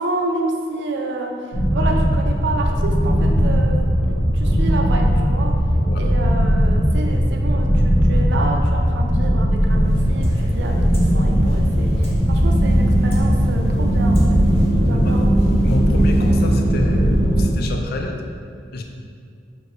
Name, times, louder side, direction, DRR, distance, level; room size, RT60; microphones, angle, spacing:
voice 1, 0.0-1.3 1.7-3.8 4.1-5.5 6.0-14.4 14.8-15.3, right 2 dB, 65° right, 2 dB, 0.4 m, -29 dB
sound 1, 1.5-17.4, equal, 80° left, 1.3 m, -17 dB
sound 2, 9.5-17.7, left 1 dB, 35° left, 0.7 m, -35 dB
voice 2, 15.6-18.2 18.7-18.8, left 2 dB, 55° left, 3 dB, 0.4 m, -29 dB
4.4 x 2.6 x 3.2 m, 2.2 s
head